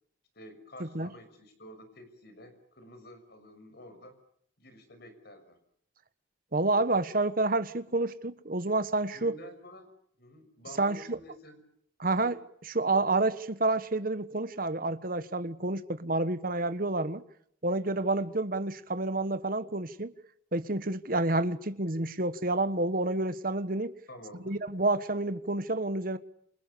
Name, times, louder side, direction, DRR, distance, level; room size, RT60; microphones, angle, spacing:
voice 1, 0.3-4.1 4.6-5.6 9.1-9.9 10.2-11.6 12.2-12.3 24.1-24.6, left 1 dB, 55° left, 6.4 m, -50 dB
voice 2, 6.5-9.4 10.8-11.2 12.0-17.2 17.6-20.1 20.5-23.9 24.5-26.2, right 2 dB, 45° right, 1.4 m, -29 dB
28.5 x 28.5 x 6.9 m
head